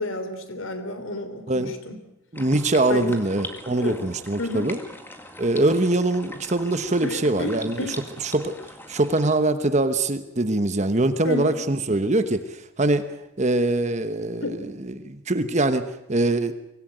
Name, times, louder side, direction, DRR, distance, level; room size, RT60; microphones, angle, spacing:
voice 1, 0.0-2.0 2.9-3.1 3.7-4.0 4.4-4.7 7.0-8.0 11.2-11.5 14.4-14.6, left 2 dB, 80° left, 8 dB, 3.3 m, -31 dB
sound 1, 2.3-9.4, left 1 dB, 10° left, 2.0 m, -41 dB
voice 2, 2.3-4.8 5.4-7.9 8.2-8.6 8.9-13.1 13.4-16.5, right 2 dB, 35° right, 10 dB, 1.1 m, -23 dB
24.0 x 17.5 x 9.2 m, 0.87 s
head